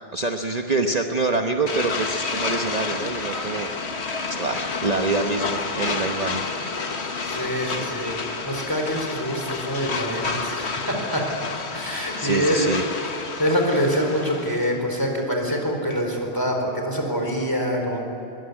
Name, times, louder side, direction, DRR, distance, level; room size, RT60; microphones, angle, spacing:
voice 1, 0.0-3.9 4.3-7.0 12.2-13.1, right 3 dB, 40° right, 4 dB, 1.1 m, -26 dB
sound 1, 1.7-14.7, left 4 dB, 80° left, 1.8 m, -30 dB
voice 2, 7.2-8.1 8.5-11.2 11.7-13.0 13.4-18.0, equal, 20° left, 1 dB, 4.3 m, -25 dB
22.0 x 21.0 x 9.8 m, 2.8 s
omnidirectional pair, 1.1 m